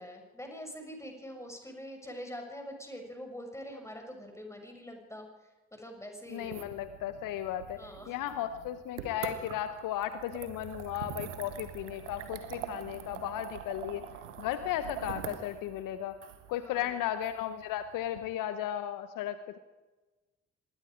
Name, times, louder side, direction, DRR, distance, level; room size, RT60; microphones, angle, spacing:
voice 1, 0.0-5.3 5.7-6.7 7.8-8.2 16.6-17.0, equal, 10° left, 3 dB, 6.9 m, -44 dB
voice 2, 6.3-7.8 8.1-14.1 14.4-16.2 16.5-19.6, left 11 dB, 60° left, 12 dB, 1.0 m, -35 dB
sound 1, 6.3-18.2, right 9 dB, 75° right, 1.5 m, -44 dB
26.0 x 20.5 x 5.1 m, 1.2 s
figure-of-eight pair, 40°, 36 cm